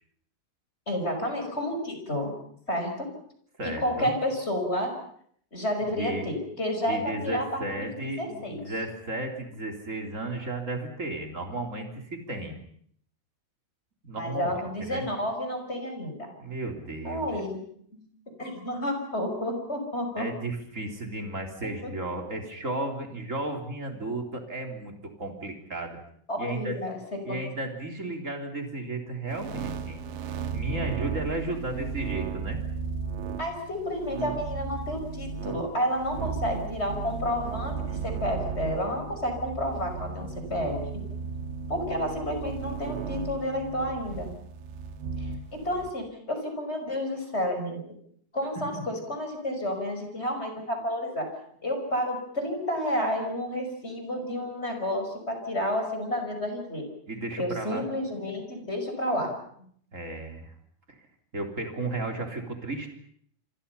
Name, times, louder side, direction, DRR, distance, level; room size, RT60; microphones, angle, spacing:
voice 1, 0.9-2.3 2.7-3.1 3.6-4.9 5.5-8.6 14.1-16.3 17.0-17.6 17.9-20.3 21.8-21.9 26.3-27.4 33.4-40.8 41.7-44.3 45.2-45.3 45.6-47.8 48.3-51.3 51.6-56.8 57.4-59.3, left 1 dB, 10° left, 4 dB, 5.2 m, -30 dB
voice 2, 3.6-4.1 5.9-6.3 6.8-12.5 14.0-15.0 16.4-17.2 20.2-26.0 26.4-26.8 27.2-30.0 30.5-32.6 48.7-48.8 57.1-57.8 59.9-60.5 60.9-61.0 61.3-62.9, right 2 dB, 15° right, 3 dB, 3.1 m, -34 dB
sound 1, 29.3-45.9, right 5 dB, 70° right, 3.3 m, -35 dB
27.0 x 26.5 x 5.7 m, 0.63 s
omnidirectional pair, 6.0 m